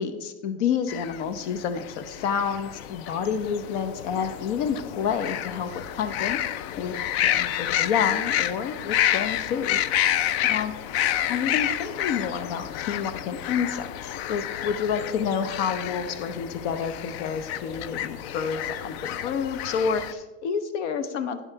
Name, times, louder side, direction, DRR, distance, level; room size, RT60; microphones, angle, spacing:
voice 1, 0.0-6.4 6.7-9.8 10.4-10.7 11.3-21.4, left 7 dB, 80° left, 10 dB, 0.8 m, -29 dB
sound 1, 0.9-20.1, left 11 dB, 65° left, 0.5 m, -29 dB
9.5 x 7.4 x 4.5 m, 1.2 s
supercardioid pair, 170°, 35 cm